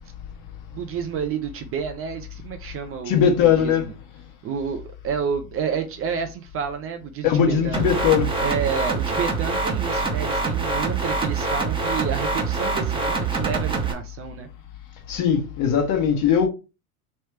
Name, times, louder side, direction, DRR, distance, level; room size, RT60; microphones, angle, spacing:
voice 1, 0.7-3.3 3.6-3.9 4.4-7.9 8.4-14.5, right 7 dB, 30° right, 0.6 m, -30 dB
voice 2, 3.1-3.9 7.2-8.3 15.1-16.5, left 8 dB, 45° left, 1.4 m, -19 dB
sound 1, 7.7-13.9, right 3 dB, 10° right, 1.1 m, -25 dB
3.3 x 3.1 x 4.6 m
hypercardioid pair, 100°, 45 cm